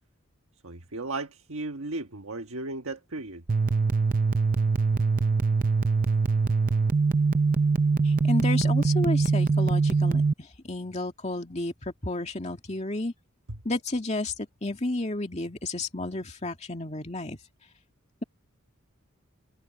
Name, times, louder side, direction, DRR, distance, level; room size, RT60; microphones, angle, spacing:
voice 1, 0.6-3.4 13.5-13.6, right 2 dB, 80° right, 1.3 m, -35 dB
sound 1, 3.5-10.3, right 4 dB, 40° right, 0.5 m, -23 dB
voice 2, 8.0-10.2 10.7-13.1 13.6-14.3 14.6-17.4, left 2 dB, 30° left, 2.3 m, -31 dB
head